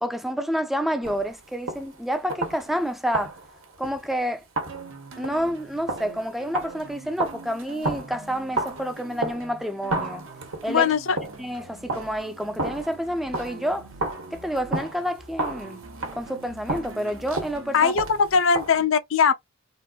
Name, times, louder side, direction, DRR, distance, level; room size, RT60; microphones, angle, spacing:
voice 1, 0.0-3.4 3.8-4.4 5.2-10.3 10.6-10.9 11.4-13.9 14.3-15.8 16.1-17.9, equal, ahead, 0.3 m, -29 dB
sound 1, 1.0-2.0 2.3-2.8 3.1-4.2 4.6-9.6 9.9-11.6 11.9-13.7 14.0-18.8, right 2 dB, 90° right, 1.1 m, -32 dB
sound 2, 4.7-18.4, right 3 dB, 65° right, 0.7 m, -45 dB
voice 2, 10.7-11.2 17.7-19.3, left 6 dB, 75° left, 0.5 m, -20 dB
3.6 x 2.5 x 2.2 m
head